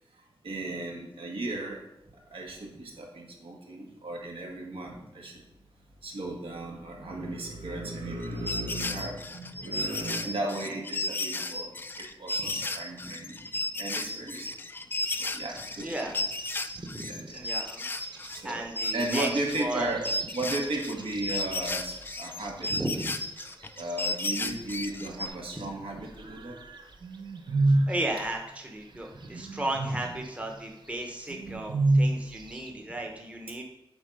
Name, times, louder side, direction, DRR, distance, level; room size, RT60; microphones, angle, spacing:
voice 1, 0.4-1.8 2.3-5.3 6.0-11.7 12.0-13.5 13.8-14.5 15.2-16.1 17.0-17.4 18.3-18.7 18.9-22.7 23.8-26.5, right 2 dB, 80° right, 0 dB, 1.7 m, -35 dB
sound 1, 8.2-18.5 18.8-25.3, left 2 dB, 25° left, 0.3 m, -34 dB
sound 2, 15.1-25.8 26.0-32.7, right 2 dB, 55° right, 0.7 m, -33 dB
voice 2, 15.8-16.1 16.9-17.1 17.3-17.9 18.1-19.3 19.6-19.9 22.6-23.1 27.9-33.6, right 1 dB, 15° right, 1 dB, 0.9 m, -35 dB
8.1 x 4.2 x 5.3 m, 0.89 s
wide cardioid pair, 150°, 9 cm